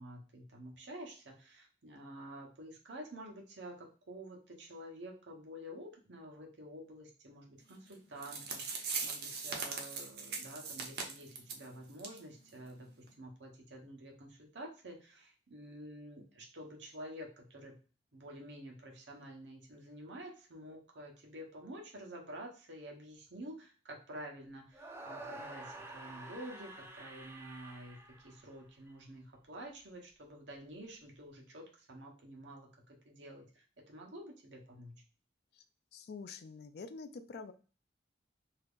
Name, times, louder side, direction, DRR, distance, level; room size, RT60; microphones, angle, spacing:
voice 1, 0.0-17.7 18.1-35.0, right 1 dB, 90° right, 1 dB, 1.0 m, -49 dB
sound 1, 7.9-8.0 8.2-11.6 12.0-12.2 12.5-12.6 13.1-13.2, right 5 dB, 60° right, 0.7 m, -40 dB
sound 2, 24.7-28.9, right 2 dB, 15° right, 0.4 m, -49 dB
voice 2, 35.9-37.5, left 4 dB, 60° left, 10 dB, 0.4 m, -46 dB
2.8 x 2.4 x 3.5 m, 0.36 s
head